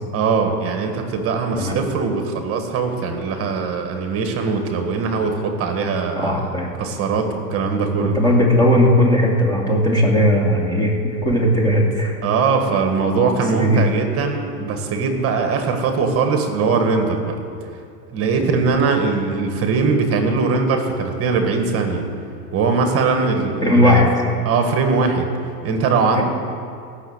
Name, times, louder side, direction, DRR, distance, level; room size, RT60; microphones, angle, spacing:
voice 1, 0.1-6.5 6.8-8.2 12.2-17.3 18.1-22.1 22.5-24.0 24.5-25.3 25.6-26.2, right 4 dB, 30° right, 5 dB, 1.6 m, -21 dB
voice 2, 6.1-6.7 8.0-12.1 13.5-13.9 18.4-18.5 23.6-24.1 26.1-26.2, left 1 dB, 10° left, -2 dB, 2.3 m, -17 dB
15.5 x 6.5 x 8.1 m, 2.3 s
supercardioid pair, 135°, 48 cm